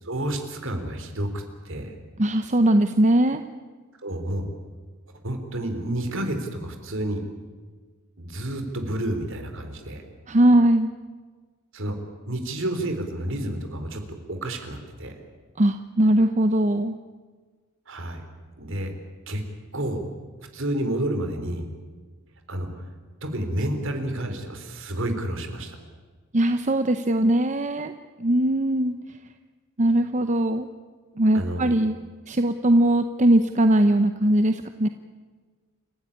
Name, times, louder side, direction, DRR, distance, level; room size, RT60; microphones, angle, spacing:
voice 1, 0.0-1.9 4.0-4.5 5.2-7.2 8.2-10.0 11.7-12.0 12.3-14.0 14.3-15.1 17.9-18.2 18.6-18.9 19.3-19.4 19.7-20.0 20.5-21.7 22.5-22.9 23.2-25.8 31.3-31.7, right 1 dB, 60° right, 6 dB, 3.7 m, -30 dB
voice 2, 2.2-3.4 10.3-10.9 15.6-16.9 26.3-27.9 28.2-28.9 29.8-30.7 31.2-31.9 32.3-34.9, right 1 dB, 35° right, 8 dB, 0.8 m, -20 dB
29.0 x 15.0 x 10.0 m, 1.5 s
head